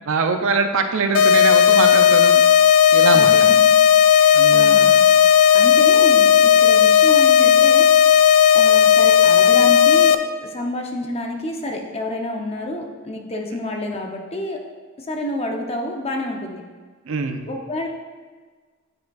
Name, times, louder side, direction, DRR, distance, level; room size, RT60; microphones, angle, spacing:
voice 1, 0.1-2.4 2.9-3.3 4.3-4.8 17.1-17.5, right 4 dB, 65° right, 7 dB, 0.5 m, -22 dB
sound 1, 1.1-10.1, left 8 dB, 80° left, 0.4 m, -13 dB
voice 2, 3.1-3.6 4.1-5.1 5.5-7.9 8.5-14.6 15.0-16.6 17.5-17.9, left 1 dB, 30° left, 1 dB, 0.7 m, -29 dB
9.2 x 5.1 x 2.3 m, 1.5 s
head